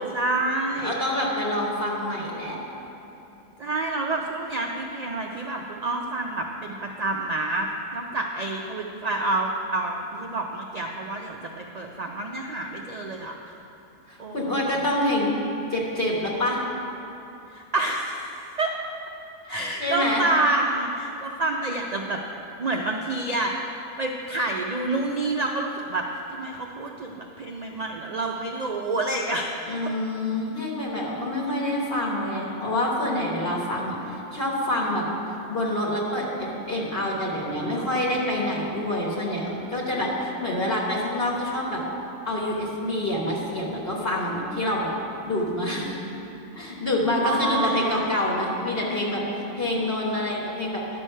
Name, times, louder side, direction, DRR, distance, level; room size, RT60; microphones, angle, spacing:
voice 1, 0.0-1.0 3.6-13.4 14.2-14.5 17.5-18.7 19.5-22.2 22.6-29.6 47.2-48.1, right 2 dB, 80° right, 1 dB, 0.3 m, -28 dB
voice 2, 0.7-2.6 14.1-15.3 15.7-16.6 19.8-20.3 29.7-35.0 35.5-41.8 42.2-44.9 45.2-46.0 46.5-50.8, left 1 dB, 45° left, -3 dB, 1.4 m, -27 dB
10.5 x 6.4 x 5.5 m, 2.9 s
omnidirectional pair, 1.5 m